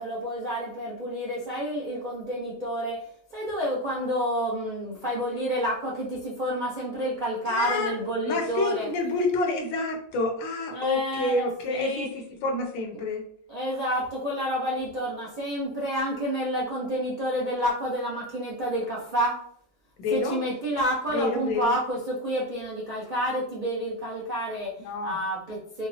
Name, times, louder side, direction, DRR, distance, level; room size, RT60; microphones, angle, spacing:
voice 1, 0.0-3.0 3.3-8.9 10.7-11.4 11.7-12.1 13.5-19.4 20.1-24.7 25.0-25.9, equal, 55° right, -6 dB, 0.5 m, -29 dB
voice 2, 7.5-7.9 8.2-13.2 20.0-20.4 21.1-21.7 24.8-25.2, left 2 dB, 85° left, 4 dB, 1.4 m, -28 dB
5.0 x 2.0 x 2.7 m, 0.62 s
omnidirectional pair, 2.0 m